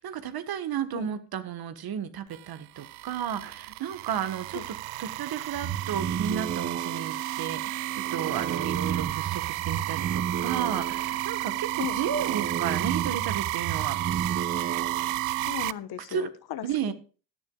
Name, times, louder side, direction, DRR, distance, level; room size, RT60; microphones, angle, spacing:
voice 1, 0.0-4.6 5.0-14.0 16.1-16.3 16.6-16.9, right 9 dB, 45° right, 1.4 m, -33 dB
sound 1, 2.3-15.7, right 21 dB, 75° right, 0.6 m, -32 dB
sound 2, 5.5-15.5, right 7 dB, 25° right, 0.7 m, -33 dB
voice 2, 15.5-16.9, left 11 dB, 50° left, 1.2 m, -37 dB
16.0 x 10.5 x 2.4 m
supercardioid pair, 75°, 50 cm